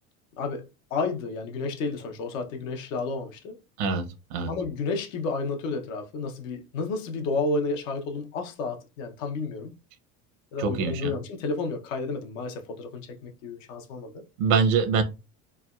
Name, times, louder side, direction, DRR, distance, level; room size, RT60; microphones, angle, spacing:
voice 1, 0.9-3.6 4.5-9.7 10.5-14.2, left 3 dB, 85° left, 0.8 m, -31 dB
voice 2, 3.8-4.5 10.6-11.2 14.4-15.0, right 5 dB, 75° right, 0.8 m, -24 dB
3.3 x 2.1 x 2.3 m
supercardioid pair, 90°, 38 cm